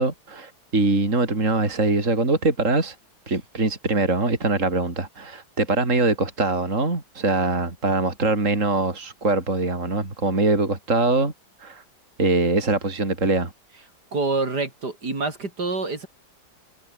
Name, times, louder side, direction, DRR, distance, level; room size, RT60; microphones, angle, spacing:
voice 1, 0.0-3.0 3.3-11.3 11.6-11.8 12.2-13.5, right 3 dB, 40° right, 4.3 m, -23 dB
voice 2, 14.1-16.1, right 3 dB, 55° right, 5.5 m, -26 dB
omnidirectional pair, 2.1 m